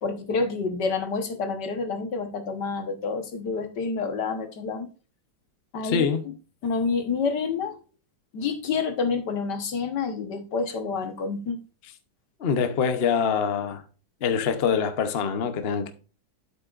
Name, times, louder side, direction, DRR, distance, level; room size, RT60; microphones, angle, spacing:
voice 1, 0.0-4.9 5.7-6.1 6.6-7.8 8.3-11.6, left 4 dB, 65° left, 1.8 m, -28 dB
voice 2, 5.8-6.2 12.4-13.8 14.2-15.9, left 6 dB, 45° left, 0.8 m, -24 dB
8.5 x 8.0 x 2.5 m
omnidirectional pair, 2.0 m